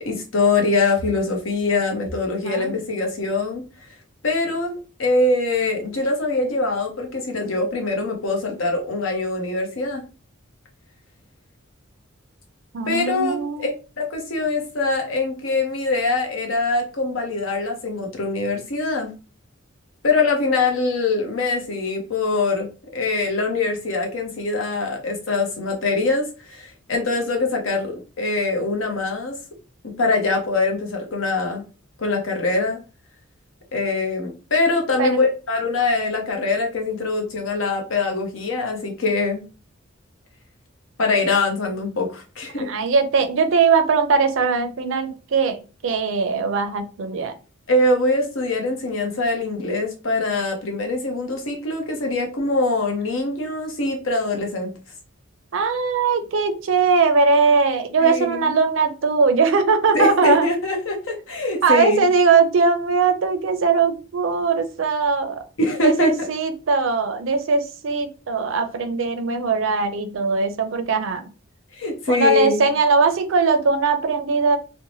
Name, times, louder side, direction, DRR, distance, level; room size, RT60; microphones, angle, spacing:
voice 1, 0.0-3.6 4.2-4.7 5.0-10.0 12.9-19.1 20.0-29.3 29.8-31.7 32.0-32.8 33.7-39.4 41.0-42.7 47.7-54.7 58.0-58.5 59.9-62.1 65.6-66.1 71.7-72.7, left 3 dB, 70° left, 2 dB, 0.8 m, -23 dB
voice 2, 12.7-13.7 35.0-35.2 42.5-47.3 55.5-60.4 61.6-65.4 65.8-71.2 72.1-74.6, right 4 dB, 70° right, 8 dB, 0.4 m, -20 dB
2.7 x 2.1 x 3.0 m, 0.33 s
head